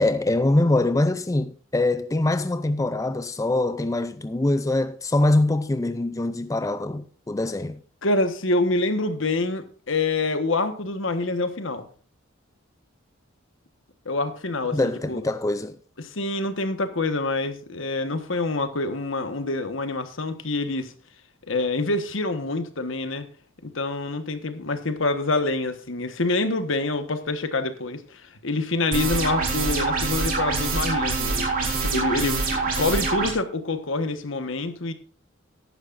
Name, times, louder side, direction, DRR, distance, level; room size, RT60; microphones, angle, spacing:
voice 1, 0.0-7.8 14.7-15.8, left 2 dB, 15° left, 0.4 m, -23 dB
voice 2, 8.0-11.9 14.0-15.2 16.0-20.9 21.5-23.2 23.6-34.9, left 2 dB, 75° left, 1.4 m, -26 dB
sound 1, 28.9-33.3, right 3 dB, 45° right, 3.6 m, -25 dB
14.5 x 11.0 x 2.6 m
head